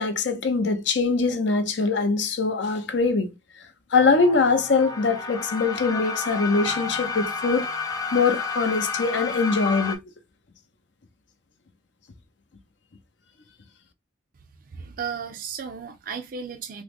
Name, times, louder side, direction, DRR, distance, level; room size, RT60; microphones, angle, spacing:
voice 1, 0.0-3.3 3.9-7.7 8.1-10.0, left 4 dB, 65° left, 0.6 m, -22 dB
sound 1, 4.0-9.9, left 4 dB, 20° left, 0.5 m, -31 dB
voice 2, 14.7-16.8, right 6 dB, 45° right, 0.4 m, -34 dB
3.4 x 2.0 x 3.4 m
head